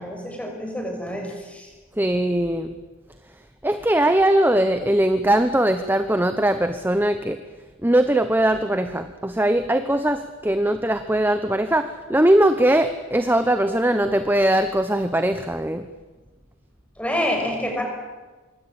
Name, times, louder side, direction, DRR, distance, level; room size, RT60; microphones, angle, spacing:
voice 1, 0.0-1.7 17.0-17.8, left 1 dB, 5° left, 2 dB, 6.7 m, -27 dB
voice 2, 2.0-2.7 3.6-7.4 7.8-15.9, right 1 dB, 10° right, 9 dB, 0.9 m, -20 dB
26.0 x 23.5 x 8.8 m, 1.3 s
head